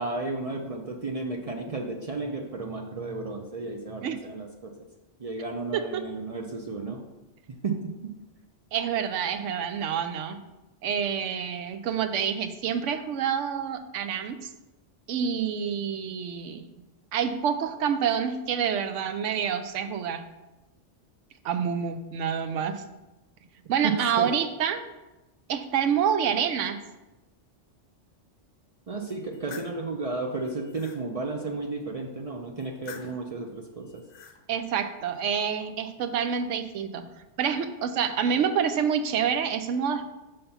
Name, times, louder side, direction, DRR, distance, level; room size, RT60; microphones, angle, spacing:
voice 1, 0.0-4.7 5.2-7.0 7.6-8.1 23.8-24.3 28.9-34.0, right 3 dB, 55° right, 2 dB, 0.4 m, -33 dB
voice 2, 5.7-6.0 8.7-10.4 10.8-14.5 15.1-16.7 17.1-20.2 21.4-22.8 23.7-24.9 25.5-26.8 34.5-37.1 37.4-40.0, right 7 dB, 85° right, 9 dB, 0.9 m, -27 dB
sound 1, 29.1-29.8 30.4-31.0 32.6-33.3 33.9-34.4, left 6 dB, 55° left, 0.8 m, -46 dB
5.7 x 3.5 x 5.5 m, 1.0 s
omnidirectional pair, 1.2 m